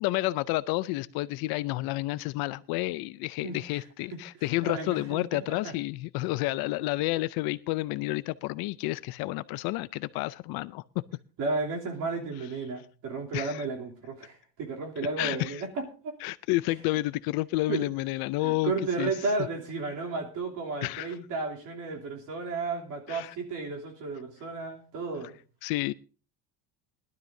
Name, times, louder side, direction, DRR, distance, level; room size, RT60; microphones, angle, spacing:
voice 1, 0.0-11.0 13.3-13.7 15.2-15.6 16.2-18.7 19.0-19.1 20.8-21.1 23.1-23.3 25.6-25.9, left 19 dB, 60° left, 0.5 m, -30 dB
voice 2, 4.6-5.7 11.4-16.2 17.7-17.9 18.4-25.4, right 3 dB, 50° right, 3.0 m, -33 dB
20.5 x 12.0 x 2.6 m
cardioid pair, 170°, 41 cm